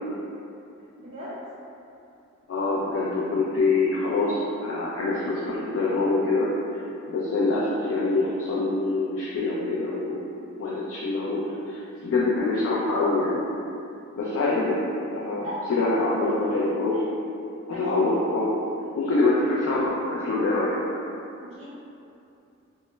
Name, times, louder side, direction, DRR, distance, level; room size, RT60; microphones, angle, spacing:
voice 1, 1.0-1.3 15.4-16.3 17.7-17.9 21.4-21.7, left 1 dB, 30° right, -8 dB, 0.5 m, -36 dB
voice 2, 2.5-6.8 7.1-10.3 10.6-13.5 14.1-14.8 15.1-17.0 17.7-18.6 19.0-20.7, left 2 dB, 65° left, -7 dB, 0.4 m, -25 dB
2.2 x 2.0 x 3.0 m, 2.7 s
head